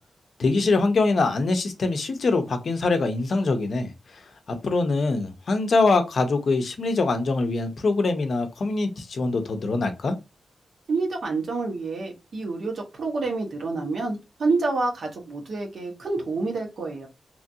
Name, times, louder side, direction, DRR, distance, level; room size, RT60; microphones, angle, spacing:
voice 1, 0.4-4.2 4.5-10.1, left 3 dB, 55° left, 0.6 m, -23 dB
voice 2, 10.9-17.1, right 3 dB, 60° right, 1.0 m, -28 dB
3.0 x 2.5 x 2.6 m
wide cardioid pair, 145°, 0 cm